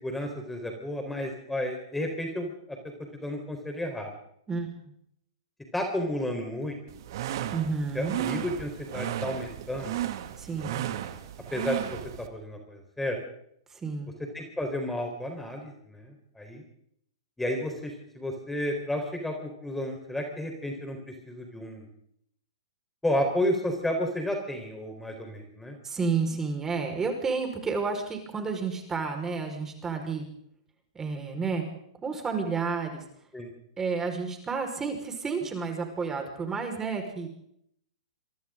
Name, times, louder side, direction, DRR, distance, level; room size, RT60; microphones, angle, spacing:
voice 1, 0.0-2.8 3.2-4.1 5.7-7.0 7.9-10.0 11.5-13.2 14.3-16.6 17.4-21.9 23.0-25.8 33.3-33.5, left 1 dB, 5° left, 3 dB, 4.5 m, -32 dB
sound 1, 6.9-12.3, right 12 dB, 55° right, 2.3 m, -34 dB
voice 2, 7.5-8.2 10.4-10.8 13.7-14.1 25.8-30.3 31.0-31.6 32.0-33.0 33.8-37.3, right 4 dB, 15° right, 4 dB, 5.2 m, -31 dB
27.5 x 25.0 x 3.9 m, 0.73 s
hypercardioid pair, 115°, 3 cm